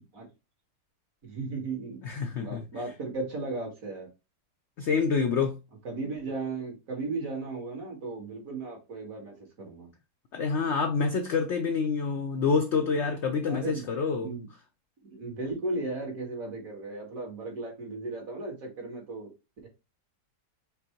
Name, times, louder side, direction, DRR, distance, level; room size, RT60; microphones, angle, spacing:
voice 1, 1.2-2.0 2.4-4.1 5.8-9.9 13.5-13.9 14.2-14.5 15.0-19.3 19.6-19.7, right 3 dB, 55° right, 2.0 m, -36 dB
voice 2, 2.0-2.7 4.8-5.6 10.3-14.3, left 5 dB, 80° left, 0.6 m, -27 dB
5.1 x 2.0 x 4.3 m
omnidirectional pair, 1.8 m